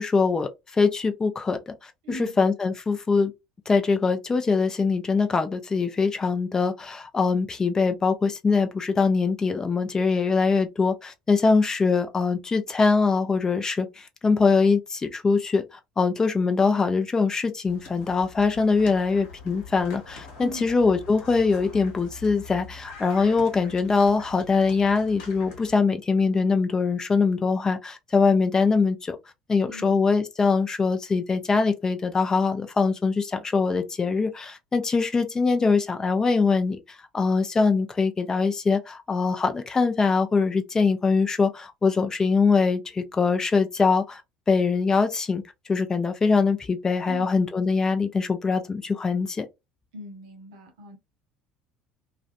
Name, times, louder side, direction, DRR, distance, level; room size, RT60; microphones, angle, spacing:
voice 1, 0.0-3.3 3.7-15.6 16.0-29.2 29.5-36.8 37.1-44.2 44.5-45.4 45.7-49.5, left 4 dB, 25° left, 0.5 m, -23 dB
voice 2, 2.0-2.4 20.4-20.7 29.7-30.0 47.1-47.3 49.9-51.0, equal, 70° right, 0.6 m, -39 dB
sound 1, 17.7-25.8, left 4 dB, 65° left, 1.1 m, -44 dB
2.4 x 2.1 x 2.4 m
figure-of-eight pair, 60°, 3 cm